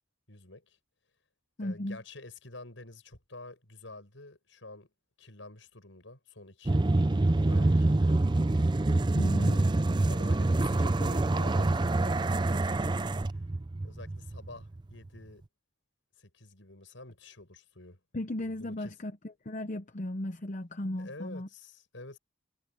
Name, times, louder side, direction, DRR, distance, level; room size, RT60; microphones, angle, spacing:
voice 1, 0.3-0.8 1.6-4.9 5.2-7.1 7.3-8.3 9.4-9.8 10.1-12.9 13.2-13.4 13.8-15.4 16.2-18.0 18.4-18.9 21.0-22.2, left 2 dB, 80° left, 6.4 m, -48 dB
voice 2, 1.6-2.0 9.1-9.6 18.1-21.5, left 1 dB, 40° left, 0.8 m, -36 dB
sound 1, 6.7-14.8, right 2 dB, 25° right, 0.5 m, -26 dB
head